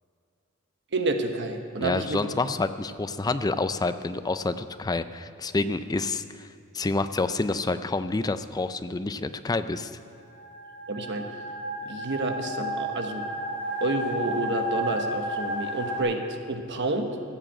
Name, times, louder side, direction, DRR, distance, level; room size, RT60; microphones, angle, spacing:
voice 1, 0.9-2.3 10.9-11.3 11.8-13.3 13.8-17.2, right 2 dB, 55° right, 5 dB, 1.1 m, -29 dB
voice 2, 1.8-6.5 6.7-9.9, left 3 dB, 20° left, 11 dB, 0.4 m, -28 dB
sound 1, 10.2-16.0, equal, 55° left, 2.8 m, -32 dB
15.0 x 7.6 x 7.5 m, 2.6 s
head